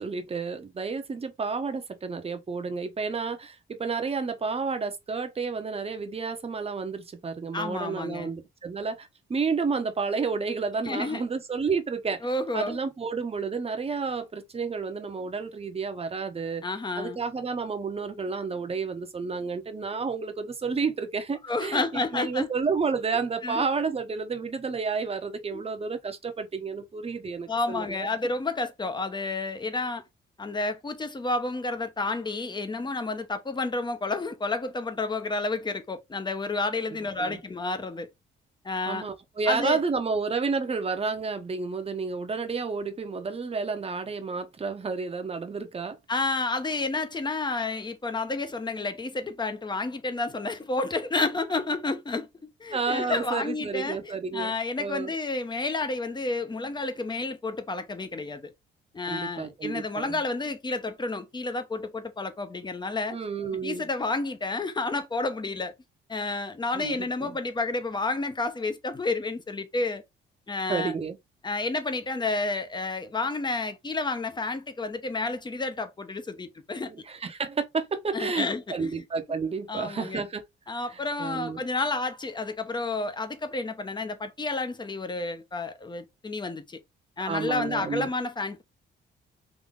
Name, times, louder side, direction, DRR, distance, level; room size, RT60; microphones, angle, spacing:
voice 1, 0.0-12.2 12.5-16.6 17.0-21.8 22.1-28.1 37.2-37.4 38.9-46.0 52.7-55.1 59.1-60.2 63.1-63.9 66.7-67.4 70.7-71.2 76.8-80.4 80.9-81.6 87.2-88.1, right 5 dB, 30° right, 1.0 m, -31 dB
voice 2, 7.5-8.3 10.8-11.2 12.2-12.8 16.6-17.2 21.5-22.5 23.4-23.6 25.5-25.6 27.5-30.0 30.4-38.1 38.6-39.0 39.5-39.8 46.1-54.0 54.3-58.5 58.9-63.2 63.6-65.7 66.1-70.0 70.5-70.9 71.4-76.9 78.1-79.0 79.7-80.2 80.7-86.8 87.2-88.6, left 3 dB, 20° left, 1.0 m, -30 dB
4.0 x 2.9 x 3.6 m
cardioid pair, 90°, 20 cm